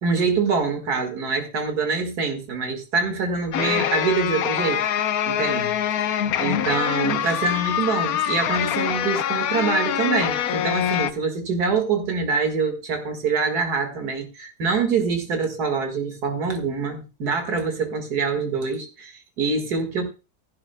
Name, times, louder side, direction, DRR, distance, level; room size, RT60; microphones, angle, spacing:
voice 1, 0.0-4.9 5.3-6.1 6.4-20.0, right 4 dB, 75° right, 4 dB, 2.3 m, -25 dB
sound 1, 3.5-11.1, left 10 dB, 70° left, 1.1 m, -24 dB
14.5 x 11.0 x 2.2 m, 0.30 s
omnidirectional pair, 1.7 m